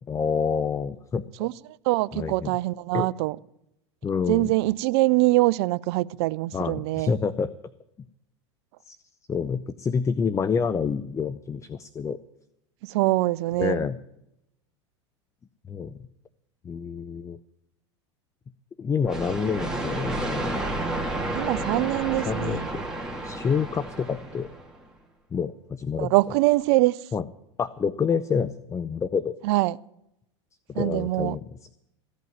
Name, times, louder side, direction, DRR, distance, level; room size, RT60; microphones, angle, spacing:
voice 1, 0.1-1.5 2.1-2.5 2.9-3.1 4.0-4.5 6.5-7.5 8.8-9.0 9.3-12.2 13.6-14.0 15.7-16.1 16.6-17.4 18.8-20.5 22.3-22.8 23.2-24.5 25.3-26.1 27.1-27.2 27.6-29.3 30.7-31.4, left 6 dB, 20° left, 0.6 m, -28 dB
voice 2, 1.9-3.4 4.3-7.1 12.8-13.8 21.3-22.7 26.0-27.0 29.4-29.8 30.7-31.4, right 19 dB, 60° right, 0.5 m, -23 dB
sound 1, 19.0-24.8, right 1 dB, 5° right, 2.8 m, -31 dB
15.0 x 8.3 x 9.2 m
hypercardioid pair, 100°, 15 cm